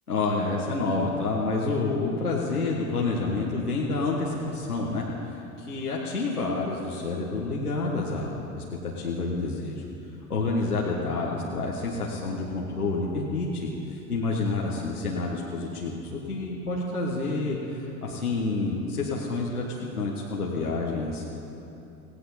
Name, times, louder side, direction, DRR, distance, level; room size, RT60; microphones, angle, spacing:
voice 1, 0.1-5.0 5.6-8.4 8.8-9.8 10.3-13.7 14.1-19.6 20.0-21.2, left 3 dB, 90° left, -5 dB, 1.6 m, -28 dB
18.5 x 17.0 x 4.3 m, 2.8 s
figure-of-eight pair, 70°, 43 cm